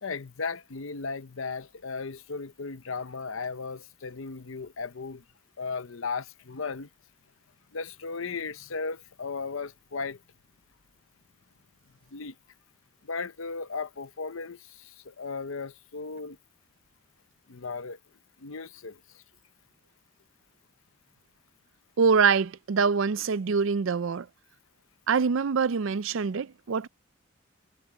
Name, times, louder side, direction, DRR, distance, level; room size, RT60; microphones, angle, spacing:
voice 1, 0.0-5.2 5.6-6.9 7.7-10.2 12.1-12.3 13.0-16.4 17.5-18.0 18.4-19.0, left 4 dB, 75° left, 0.8 m, -36 dB
voice 2, 22.0-24.3 25.1-26.9, right 5 dB, 70° right, 0.5 m, -24 dB
head